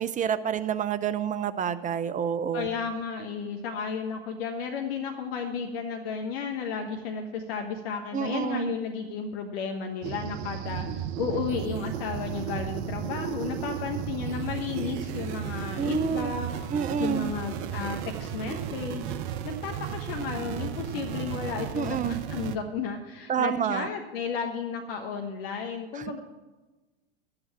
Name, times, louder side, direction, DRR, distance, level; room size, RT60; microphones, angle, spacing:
voice 1, 0.0-2.7 8.1-8.7 15.8-16.3 16.7-17.3 21.7-22.2 23.3-23.9 26.0-26.1, right 8 dB, 25° right, 14 dB, 0.7 m, -28 dB
voice 2, 2.5-16.5 17.0-26.2, left 5 dB, 65° left, 3 dB, 1.3 m, -33 dB
sound 1, 10.0-22.6, right 10 dB, 55° right, 0.9 m, -34 dB
12.0 x 7.9 x 7.4 m, 1.2 s
hypercardioid pair, 95°, 32 cm